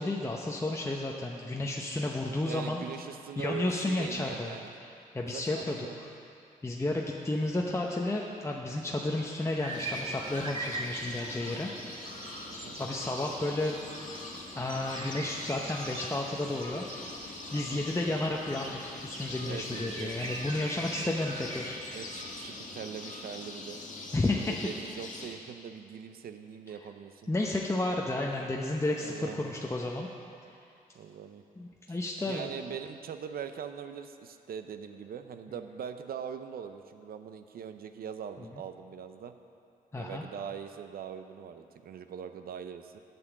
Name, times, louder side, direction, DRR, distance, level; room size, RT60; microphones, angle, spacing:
voice 1, 0.0-2.8 3.4-4.9 5.1-6.1 6.6-11.7 12.8-13.7 14.5-16.9 17.3-21.8 24.1-24.5 27.3-30.1 31.6-32.5 38.5-38.6 39.9-40.2, left 2 dB, 20° left, -1 dB, 0.8 m, -32 dB
voice 2, 2.2-4.7 5.2-6.1 12.5-12.8 17.5-17.8 19.4-20.1 20.9-21.2 21.9-23.8 24.3-27.3 29.0-29.5 30.9-31.4 31.9-32.0 32.2-39.3 39.9-43.0, right 8 dB, 75° right, 9 dB, 0.6 m, -42 dB
sound 1, 9.5-22.6, right 2 dB, 35° right, 1.4 m, -42 dB
sound 2, 9.7-25.3, left 3 dB, 55° left, 1.6 m, -43 dB
8.5 x 7.0 x 7.2 m, 2.6 s
cardioid pair, 65°, 16 cm